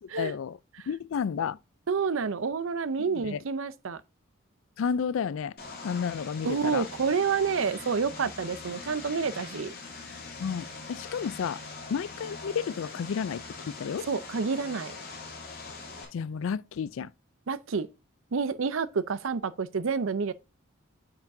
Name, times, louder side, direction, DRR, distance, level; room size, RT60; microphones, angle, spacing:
voice 1, 0.0-0.6 0.9-1.6 3.0-3.4 4.8-5.5 5.8-6.8 10.4-11.6 11.9-14.1 16.1-17.1, left 6 dB, 75° left, 0.3 m, -31 dB
voice 2, 1.9-4.0 6.4-9.7 14.1-15.0 17.5-17.9 18.3-20.3, right 5 dB, 75° right, 0.6 m, -29 dB
Vehicle, 5.6-16.1, left 4 dB, 45° left, 2.7 m, -42 dB
8.8 x 5.9 x 2.6 m
head